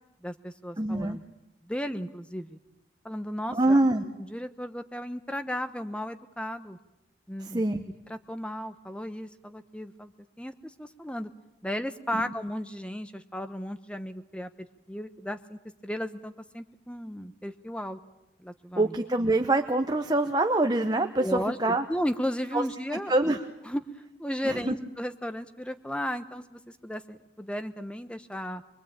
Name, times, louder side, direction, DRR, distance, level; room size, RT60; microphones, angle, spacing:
voice 1, 0.2-1.2 1.6-2.6 3.0-3.8 4.2-6.8 7.3-7.6 8.1-10.1 10.4-11.3 11.6-18.0 18.4-18.9 21.2-21.6 21.9-23.4 23.7-23.8 24.2-28.6, equal, 5° left, 10 dB, 1.0 m, -35 dB
voice 2, 0.8-1.2 3.5-4.0 7.4-7.8 12.1-12.3 18.8-21.8 22.5-22.6 22.9-23.4 24.4-24.8, right 2 dB, 20° right, 6 dB, 0.9 m, -25 dB
24.5 x 22.5 x 8.8 m, 0.93 s
head